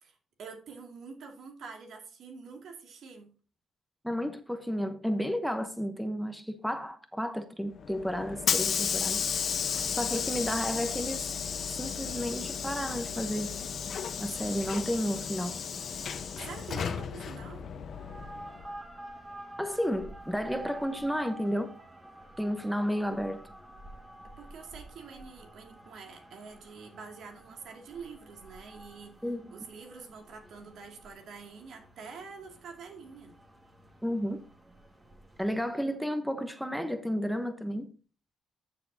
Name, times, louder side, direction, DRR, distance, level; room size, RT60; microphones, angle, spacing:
voice 1, 0.0-3.3 16.4-17.7 24.4-29.2 29.5-33.4, right 5 dB, 70° right, 2.4 m, -46 dB
voice 2, 4.0-9.2 9.9-11.3 11.8-13.6 14.2-15.6 19.6-21.8 22.4-23.4 29.2-29.4 34.0-34.4 35.4-37.9, equal, ahead, 1.0 m, -32 dB
Hiss / Sliding door, 7.7-18.6, left 7 dB, 55° left, 1.0 m, -33 dB
sound 1, 17.9-35.8, right 1 dB, 20° right, 1.9 m, -49 dB
13.0 x 6.8 x 2.8 m
cardioid pair, 90°, 0 cm